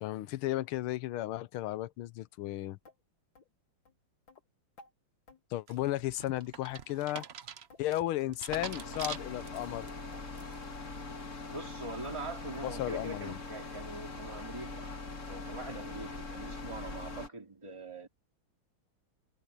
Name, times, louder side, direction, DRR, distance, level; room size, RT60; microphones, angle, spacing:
voice 1, 0.0-2.8 5.5-7.2 7.8-9.9 12.6-13.4, left 15 dB, 85° left, 1.6 m, -34 dB
sound 1, 2.9-3.0 3.4-3.5 3.9-4.0 4.3-4.4 4.8-4.9 5.3-5.4 5.8-6.0 6.3-6.4 6.7-7.3 7.7-7.9 8.2-8.4 8.7-8.9 9.1-9.3 9.6-9.7 10.1-10.2 10.6-10.8 11.1-11.3 11.5-11.7 12.0-12.2 12.5-12.8 13.1-13.2 13.6-13.7 14.1-14.2 14.6-14.7 15.1-15.2, left 3 dB, 65° left, 3.4 m, -58 dB
sound 2, 5.7-9.9 10.3-10.8, right 8 dB, 75° right, 0.6 m, -44 dB
sound 3, 8.5-17.3, left 3 dB, 35° left, 2.3 m, -42 dB
voice 2, 11.4-14.9 15.3-18.1, right 2 dB, 15° right, 3.1 m, -43 dB
omnidirectional pair, 2.3 m